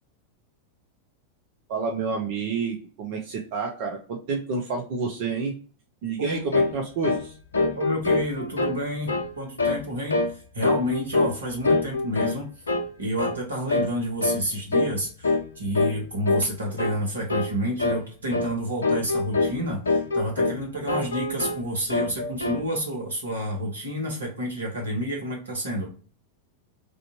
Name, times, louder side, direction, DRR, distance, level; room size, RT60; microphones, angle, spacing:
voice 1, 1.7-5.5 6.0-7.4, right 5 dB, 50° right, 1 dB, 0.6 m, -29 dB
voice 2, 6.2-6.5 7.5-10.3 10.5-12.5 13.0-25.9, equal, 75° right, -1 dB, 1.3 m, -29 dB
sound 1, 6.5-6.8 7.0-7.3 7.5-8.8 9.1-9.3 9.6-9.8 10.1-10.3 10.6-11.4 11.6-12.4 12.7-12.9 13.2-13.4 13.7-13.9 14.2-14.4 14.7-15.0 15.2-15.5 15.7-16.0 16.3-16.5 16.8-17.0 17.3-17.5 17.8-18.0 18.3-18.5 18.8-19.6 19.9-20.6 20.9-21.6 21.9-22.6, left 3 dB, 70° left, 0.5 m, -24 dB
3.4 x 2.5 x 2.8 m, 0.40 s
figure-of-eight pair, 90°, 0 cm